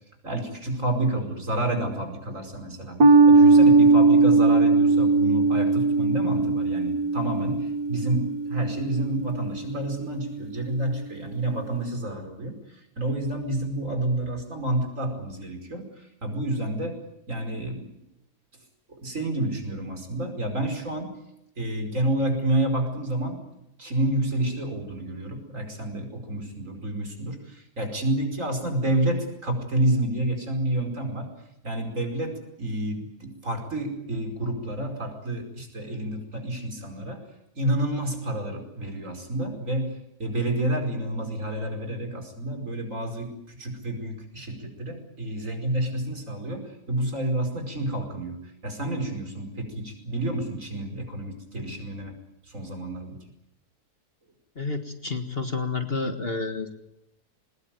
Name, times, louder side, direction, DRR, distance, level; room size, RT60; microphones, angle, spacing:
voice 1, 0.2-3.0 3.3-17.0 17.3-18.0 18.9-21.1 21.6-23.4 23.8-31.3 31.6-37.2 37.6-52.1 52.5-53.2, right 1 dB, 55° right, 5 dB, 5.5 m, -29 dB
sound 1, 3.0-9.7, right 3 dB, 70° right, 2.4 m, -19 dB
voice 2, 54.6-56.7, left 4 dB, 40° left, 7 dB, 1.9 m, -30 dB
22.0 x 20.5 x 9.3 m, 0.81 s
omnidirectional pair, 1.7 m